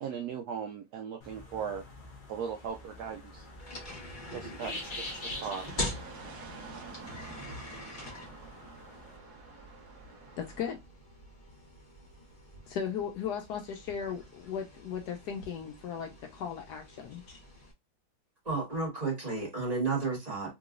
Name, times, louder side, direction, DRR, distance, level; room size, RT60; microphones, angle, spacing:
voice 1, 0.0-1.8 2.3-3.5 4.3-5.7, right 7 dB, 85° right, 0.8 m, -38 dB
sound 1, 1.2-9.2, left 2 dB, 55° left, 0.5 m, -46 dB
sound 2, 2.7-17.7, left 1 dB, 30° left, 1.2 m, -45 dB
sound 3, 4.6-10.7, right 4 dB, 60° right, 1.1 m, -48 dB
voice 2, 10.4-10.8 12.7-17.4, left 7 dB, 80° left, 0.9 m, -37 dB
voice 3, 18.4-20.5, right 4 dB, 20° right, 1.5 m, -32 dB
3.8 x 3.0 x 2.4 m
omnidirectional pair, 2.2 m